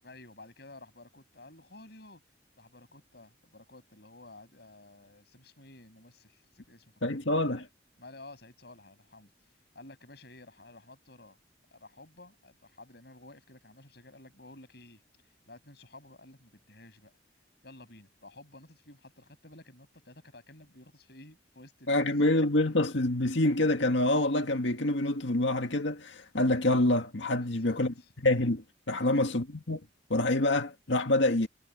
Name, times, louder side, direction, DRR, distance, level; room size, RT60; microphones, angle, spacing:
voice 1, 0.0-7.4 8.0-11.4 11.7-17.1 17.6-22.3 27.4-28.1 29.0-29.3, left 2 dB, 60° left, 7.0 m, -53 dB
voice 2, 7.0-7.7 21.9-27.9 28.2-29.8 30.1-31.5, left 1 dB, 75° left, 1.9 m, -26 dB
head